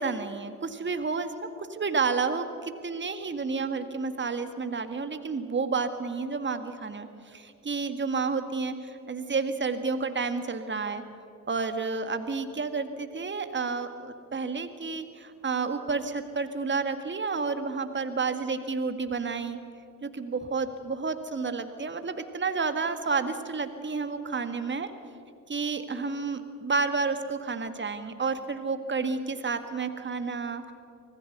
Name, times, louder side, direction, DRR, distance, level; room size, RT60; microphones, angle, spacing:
voice 1, 0.0-1.3 1.6-11.0 11.5-19.6 20.0-24.9 25.5-30.7, right 4 dB, 25° right, 9 dB, 1.9 m, -30 dB
25.0 x 18.5 x 6.7 m, 2.5 s
figure-of-eight pair, 50°, 43 cm